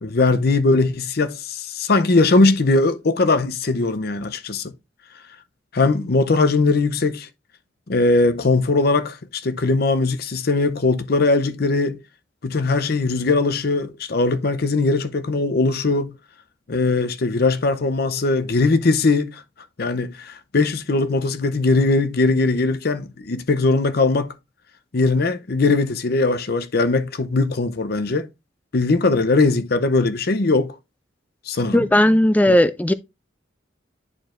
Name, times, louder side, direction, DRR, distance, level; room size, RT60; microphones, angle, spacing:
voice 1, 0.0-4.7 5.7-7.3 7.9-12.0 12.4-16.1 16.7-19.4 19.8-24.3 24.9-28.3 28.7-30.8 31.5-31.8, left 3 dB, 55° left, 0.7 m, -20 dB
voice 2, 31.7-32.9, left 1 dB, 10° left, 0.4 m, -16 dB
9.9 x 4.5 x 2.5 m
head